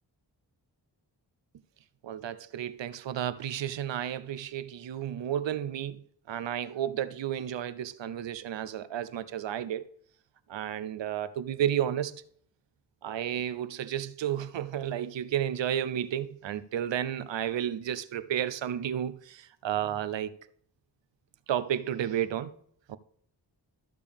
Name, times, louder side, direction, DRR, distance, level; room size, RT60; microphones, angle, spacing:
voice 1, 2.0-6.0 6.3-9.9 10.5-12.2 13.0-20.3 21.5-22.5 22.9-23.0, right 10 dB, 80° right, 14 dB, 0.7 m, -32 dB
13.5 x 6.7 x 3.5 m, 0.65 s
cardioid pair, 50°, 43 cm